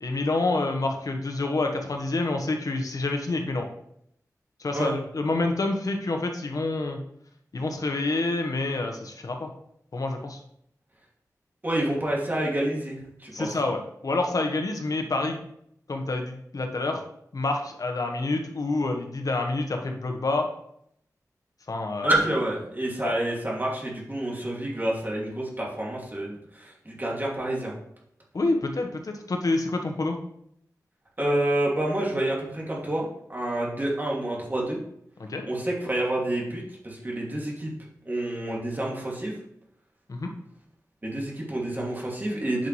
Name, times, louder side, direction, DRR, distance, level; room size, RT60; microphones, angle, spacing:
voice 1, 0.0-3.7 4.6-7.0 7.5-9.5 9.9-10.4 13.3-15.4 15.9-17.0 17.3-20.5 21.7-22.1 23.0-23.2 28.3-30.2 35.2-35.5 40.1-40.3, left 2 dB, 65° left, 4 dB, 1.2 m, -28 dB
voice 2, 11.6-13.5 22.0-27.7 31.2-34.8 35.4-37.7 38.1-39.3 41.0-42.7, right 1 dB, 30° right, -4 dB, 2.4 m, -28 dB
9.0 x 5.5 x 3.2 m, 0.73 s
cardioid pair, 55°, 7 cm